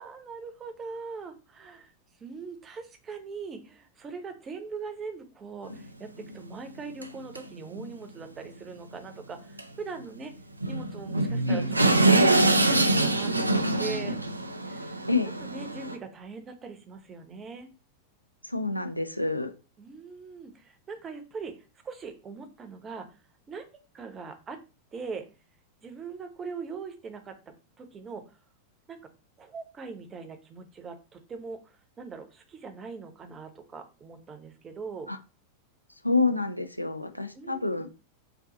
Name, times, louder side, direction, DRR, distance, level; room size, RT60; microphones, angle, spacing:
voice 1, 0.0-1.9 2.2-10.3 10.7-14.2 14.6-15.0 15.4-17.7 19.8-23.2 23.5-23.7 23.9-24.6 24.9-25.3 25.8-27.4 27.8-28.4 28.9-29.0 29.4-35.1 37.3-37.9, right 4 dB, 20° right, 6 dB, 0.8 m, -41 dB
sound 1, 5.6-5.8 6.2-6.3 7.0-7.1 7.3-7.4 7.7-7.9 9.6-9.7 10.0-10.1 10.6-16.0, right 2 dB, 85° right, 0.4 m, -24 dB
voice 2, 18.4-19.5 35.1-35.2 36.0-37.9, left 3 dB, 90° left, 8 dB, 0.5 m, -27 dB
4.0 x 2.6 x 3.7 m, 0.32 s
figure-of-eight pair, 90°, 0 cm